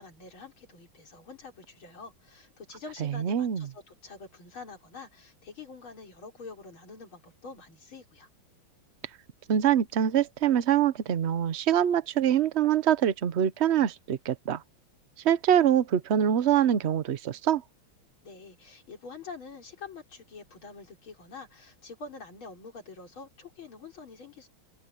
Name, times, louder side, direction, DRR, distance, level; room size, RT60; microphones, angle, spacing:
voice 1, 0.0-8.3 18.2-24.5, left 4 dB, 75° left, 5.0 m, -46 dB
voice 2, 3.0-3.7 9.5-14.6 15.2-17.6, right 9 dB, 60° right, 0.7 m, -24 dB
open air
omnidirectional pair, 2.3 m